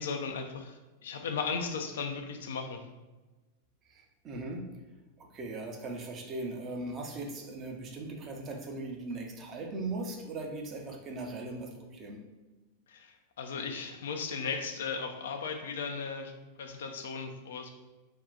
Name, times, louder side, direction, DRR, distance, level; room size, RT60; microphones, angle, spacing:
voice 1, 0.0-2.8 12.9-16.3 16.6-17.7, left 5 dB, 60° left, 5 dB, 0.4 m, -36 dB
voice 2, 3.9-4.6 5.2-12.2, right 2 dB, 30° right, 1 dB, 0.7 m, -39 dB
3.6 x 2.4 x 4.0 m, 1.1 s
figure-of-eight pair, 90°, 0 cm